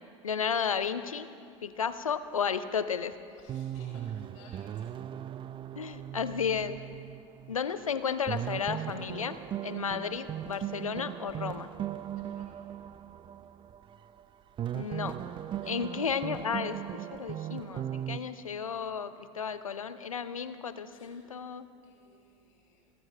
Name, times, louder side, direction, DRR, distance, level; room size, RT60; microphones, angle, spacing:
voice 1, 0.2-1.3 1.6-3.2 5.8-6.8 7.5-11.7 14.7-15.1 15.7-21.7, left 6 dB, 85° left, 13 dB, 0.6 m, -33 dB
sound 1, 3.1-3.2 3.5-7.7 8.1-14.2 14.6-18.2, right 11 dB, 30° right, 0.4 m, -38 dB
voice 2, 3.3-4.9 10.5-10.6 12.2-12.7 15.5-15.8 20.9-21.4 21.8-22.9, left 4 dB, 70° left, -3 dB, 4.9 m, -59 dB
25.0 x 14.5 x 3.3 m, 2.4 s
figure-of-eight pair, 75°, 17 cm